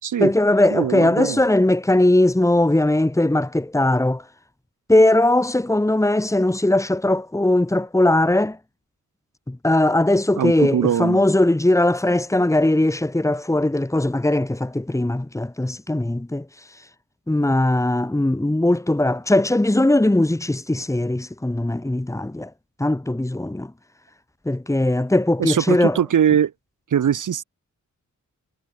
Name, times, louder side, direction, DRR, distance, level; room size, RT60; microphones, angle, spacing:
voice 1, 0.2-4.2 4.9-8.6 9.5-16.4 17.3-22.5 22.8-23.7 24.5-26.0, left 1 dB, 10° left, 4.1 m, -19 dB
voice 2, 0.7-1.4 10.4-11.2 25.4-26.5 26.9-27.4, right 9 dB, 85° right, 6.2 m, -21 dB
wide cardioid pair, 135°, 30 cm